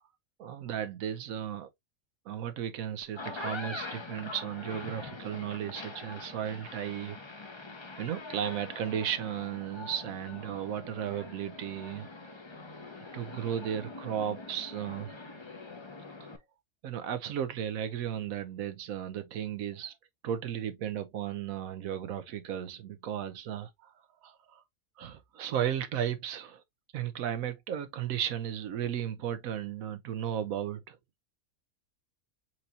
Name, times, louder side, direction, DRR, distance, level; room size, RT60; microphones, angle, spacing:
voice 1, 0.4-1.7 2.3-7.2 8.0-12.1 13.1-15.1 16.2-16.3 16.8-19.9 20.2-23.9 24.2-24.6 25.0-26.6 26.9-31.0, right 9 dB, 80° right, 1.1 m, -35 dB
Door creaks open at the end, 3.0-16.4, left 3 dB, 25° left, 0.6 m, -44 dB
4.6 x 4.0 x 2.7 m
omnidirectional pair, 1.4 m